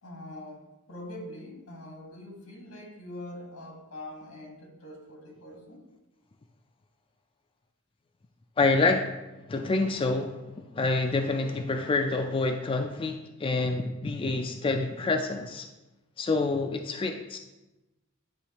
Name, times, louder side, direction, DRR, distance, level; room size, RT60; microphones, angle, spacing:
voice 1, 0.0-5.9 9.4-9.7 10.5-11.1, left 1 dB, 90° left, 1 dB, 1.5 m, -44 dB
voice 2, 8.6-9.1 9.5-10.4 10.8-15.7 16.2-17.4, left 3 dB, 25° left, 5 dB, 0.3 m, -27 dB
10.0 x 3.6 x 2.9 m, 1.0 s
head